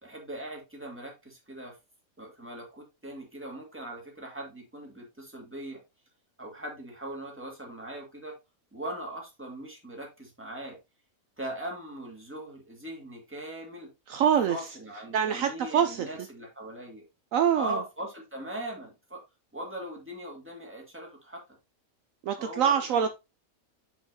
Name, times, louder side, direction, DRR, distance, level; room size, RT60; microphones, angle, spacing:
voice 1, 0.0-1.7 2.2-5.8 6.4-8.4 8.7-10.8 11.4-13.9 14.5-17.0 17.5-19.2 19.5-21.6 22.4-23.1, right 1 dB, 10° right, 2.2 m, -40 dB
voice 2, 14.1-14.6 15.1-16.1 17.3-17.8 22.2-23.1, right 8 dB, 70° right, 1.0 m, -25 dB
7.2 x 5.9 x 2.8 m
omnidirectional pair, 1.5 m